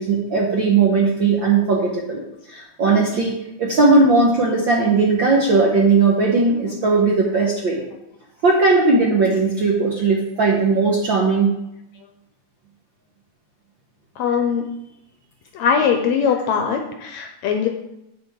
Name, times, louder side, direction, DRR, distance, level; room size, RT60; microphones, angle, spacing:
voice 1, 0.0-2.2 2.5-7.8 8.4-11.5, right 3 dB, 75° right, -2 dB, 1.0 m, -18 dB
voice 2, 14.2-14.6 15.6-17.7, left 7 dB, 75° left, 4 dB, 1.7 m, -20 dB
8.6 x 6.7 x 4.8 m, 0.86 s
omnidirectional pair, 3.7 m